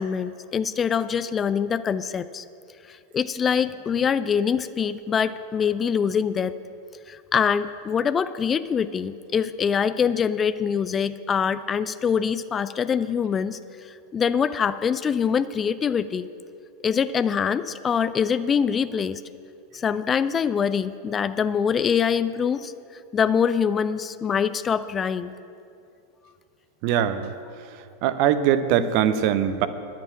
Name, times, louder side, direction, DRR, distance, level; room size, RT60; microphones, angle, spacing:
voice 1, 0.0-2.4 2.9-6.5 7.1-13.6 14.1-16.3 16.8-19.2 19.7-22.7 23.1-25.3, left 7 dB, 25° left, 13 dB, 0.3 m, -24 dB
voice 2, 26.8-27.3 28.0-29.7, right 9 dB, 50° right, 12 dB, 0.7 m, -21 dB
10.5 x 7.4 x 8.5 m, 2.6 s
figure-of-eight pair, 90°, 0 cm